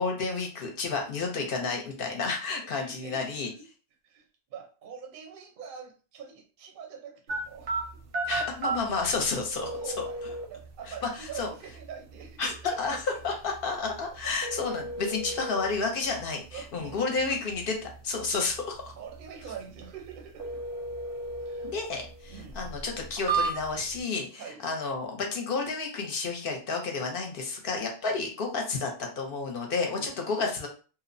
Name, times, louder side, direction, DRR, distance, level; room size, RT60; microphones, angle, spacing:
voice 1, 0.0-3.5 8.3-9.7 10.2-10.3 11.2-11.5 12.4-12.5 12.8-18.9 21.7-30.7, left 4 dB, 60° left, 2 dB, 0.7 m, -31 dB
voice 2, 2.7-3.7 4.0-4.3 4.5-8.0 8.7-10.2 10.5-13.0 16.5-17.5 19.0-20.6 21.4-21.7 22.3-22.7 24.4-24.6 28.0-28.2 29.9-30.1, right 7 dB, 55° right, 2 dB, 0.6 m, -44 dB
sound 1, 7.3-24.0, right 3 dB, 85° right, 0.9 m, -36 dB
2.8 x 2.0 x 2.5 m, 0.36 s
omnidirectional pair, 1.2 m